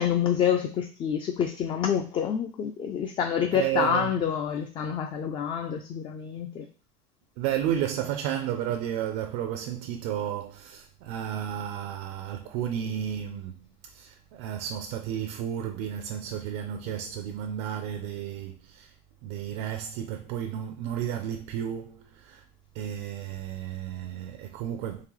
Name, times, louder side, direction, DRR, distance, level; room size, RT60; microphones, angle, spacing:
voice 1, 0.0-6.7, left 8 dB, 35° left, 0.4 m, -27 dB
voice 2, 3.5-4.1 7.4-13.5 13.9-18.9 19.2-22.4 22.7-25.1, right 10 dB, 75° right, 0.4 m, -32 dB
3.8 x 3.1 x 3.1 m
cardioid pair, 140°, 15 cm